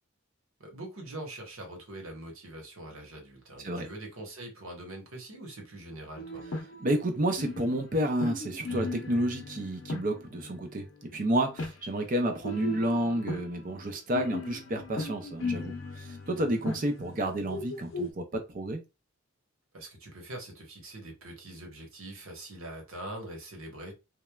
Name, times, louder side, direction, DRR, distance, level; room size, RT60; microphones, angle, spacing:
voice 1, 0.6-6.4 19.7-23.9, right 1 dB, 80° right, 1.1 m, -43 dB
sound 1, 6.2-7.0 7.3-11.8 12.4-18.1, left 2 dB, 60° left, 0.7 m, -38 dB
voice 2, 6.8-18.8, right 1 dB, 40° right, 0.5 m, -30 dB
3.0 x 2.1 x 2.2 m
head